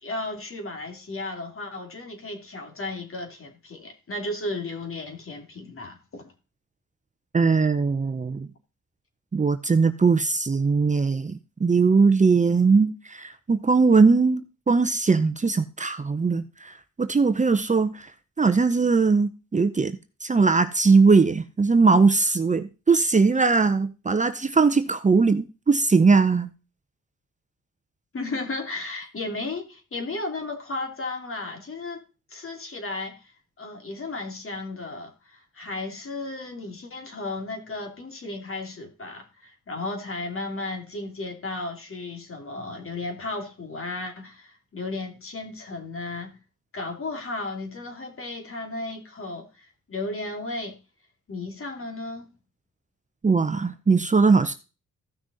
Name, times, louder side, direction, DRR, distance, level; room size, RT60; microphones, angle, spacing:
voice 1, 0.0-6.3 28.1-32.0 32.3-46.3 46.7-50.8 51.3-52.3, left 2 dB, 45° left, 2.7 m, -34 dB
voice 2, 7.3-8.5 9.3-18.1 18.4-26.5 53.2-54.5, right 4 dB, 25° right, 0.8 m, -20 dB
14.5 x 6.1 x 4.1 m
cardioid pair, 75°, 30 cm